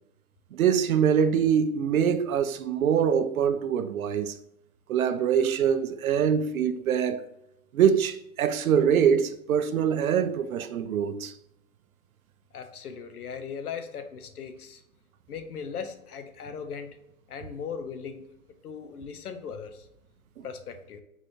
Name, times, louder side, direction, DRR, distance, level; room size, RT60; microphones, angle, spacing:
voice 1, 0.5-4.3 4.9-7.2 7.7-11.3, right 8 dB, 70° right, 0.6 m, -24 dB
voice 2, 12.5-14.8 15.3-17.0 17.3-18.2 18.6-19.8 20.4-21.0, left 6 dB, 80° left, 0.9 m, -38 dB
4.5 x 4.0 x 2.6 m
hypercardioid pair, 160°, 44 cm